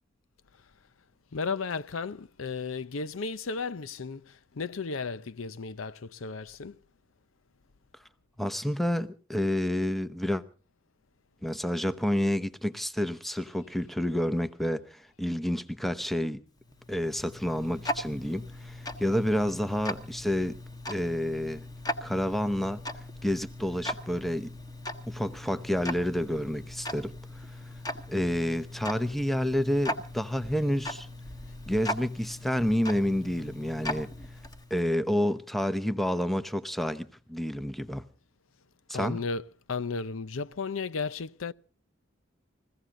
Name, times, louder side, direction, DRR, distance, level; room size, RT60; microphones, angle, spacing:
voice 1, 1.3-6.8 38.9-41.5, left 4 dB, 85° left, 0.7 m, -34 dB
voice 2, 8.4-10.4 11.4-16.4 16.9-20.6 20.9-21.6 22.0-22.8 23.2-24.5 25.1-27.2 28.1-31.1 31.7-34.1 34.7-38.1 38.9-39.2, equal, ahead, 0.8 m, -29 dB
Tick-tock, 16.6-34.9, left 1 dB, 20° left, 1.3 m, -39 dB
22.0 x 16.0 x 3.7 m
head